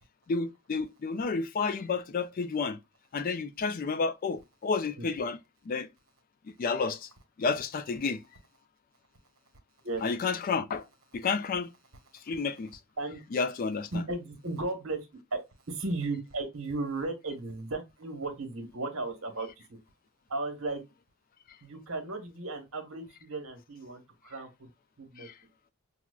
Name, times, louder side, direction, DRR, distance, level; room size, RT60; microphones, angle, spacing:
voice 1, 0.3-2.8 3.1-5.4 5.7-5.9 6.6-7.1 7.4-8.2 10.0-10.9 11.1-11.7 12.1-12.8 13.3-13.9 25.2-25.3, left 4 dB, 40° left, 0.3 m, -31 dB
voice 2, 13.9-15.4 15.7-19.8 20.3-20.8 21.6-24.7 25.0-25.3, right 2 dB, 70° right, 1.1 m, -35 dB
5.8 x 2.0 x 2.2 m
head